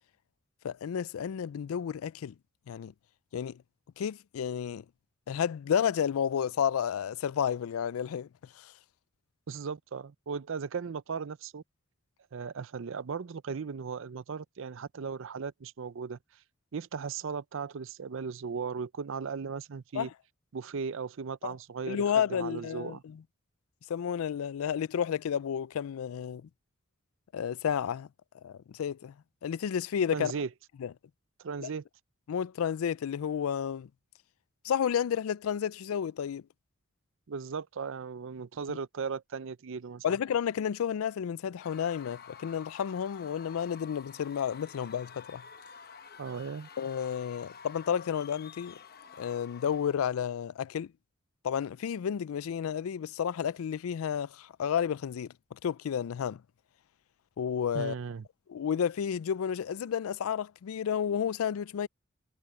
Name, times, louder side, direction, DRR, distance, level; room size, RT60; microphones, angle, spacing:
voice 1, 0.6-2.3 2.7-2.9 3.3-3.6 4.0-4.8 5.3-8.3 8.6-8.7 19.9-20.1 21.4-21.5 21.9-23.2 23.9-26.5 27.3-28.1 28.4-29.1 29.4-30.3 30.8-30.9 31.6-31.7 32.3-33.9 34.6-36.4 38.7-38.8 40.0-45.4 46.8-48.8 49.2-50.9 51.4-56.4 57.4-57.9 58.5-61.9, left 8 dB, 85° left, 0.4 m, -31 dB
voice 2, 9.5-11.6 12.3-16.2 16.7-20.1 20.5-22.0 22.3-23.0 30.1-30.5 31.4-31.8 37.3-40.0 46.2-46.7 57.7-58.2, right 5 dB, 65° right, 0.5 m, -37 dB
Screaming / Cheering / Crowd, 41.6-50.1, left 6 dB, 50° left, 1.0 m, -50 dB
head